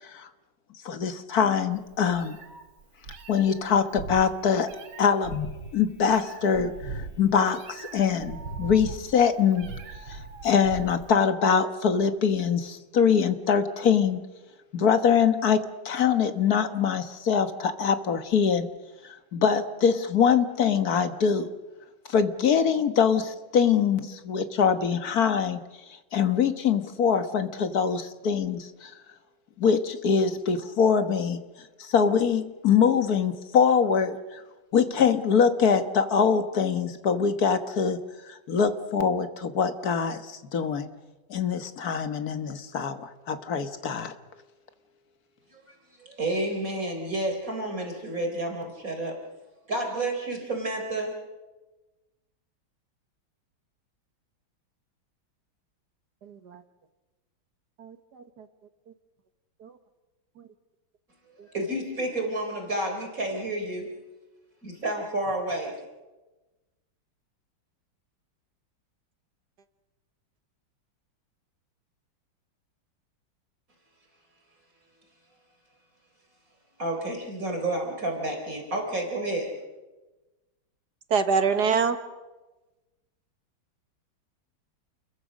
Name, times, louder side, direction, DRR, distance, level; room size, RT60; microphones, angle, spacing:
voice 1, 0.9-2.4 3.3-4.7 5.0-5.5 5.7-9.7 10.1-14.2 14.7-18.7 19.3-21.5 22.1-25.6 26.1-28.9 29.6-31.4 31.8-34.4 34.7-38.0 38.3-40.9 41.3-44.1, left 6 dB, 50° left, 9 dB, 1.7 m, -23 dB
Meow, 1.7-11.1, right 4 dB, 80° right, 2.8 m, -40 dB
voice 2, 46.0-49.2 49.7-51.1 61.5-64.0 64.6-65.8 76.8-79.5, right 1 dB, 40° right, 2 dB, 4.4 m, -30 dB
voice 3, 56.2-56.6 57.8-58.5 59.6-59.7 60.4-60.5 81.1-82.0, right 5 dB, 55° right, 9 dB, 1.8 m, -26 dB
29.5 x 22.0 x 6.4 m, 1.1 s
omnidirectional pair, 2.2 m